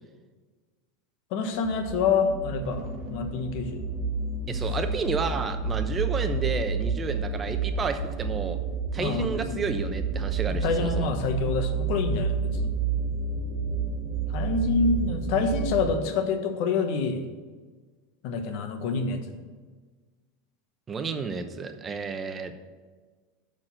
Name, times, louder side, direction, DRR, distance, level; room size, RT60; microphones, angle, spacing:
voice 1, 1.3-3.9 9.0-9.6 10.6-12.6 14.3-17.3 18.2-19.4, left 5 dB, 60° left, 6 dB, 1.2 m, -27 dB
sound 1, 1.5-16.0, right 5 dB, 50° right, 1.2 m, -30 dB
voice 2, 4.5-8.6 8.9-11.1 20.9-22.5, right 5 dB, 25° right, 8 dB, 0.8 m, -31 dB
6.6 x 6.1 x 7.5 m, 1.4 s
supercardioid pair, 125°, 0 cm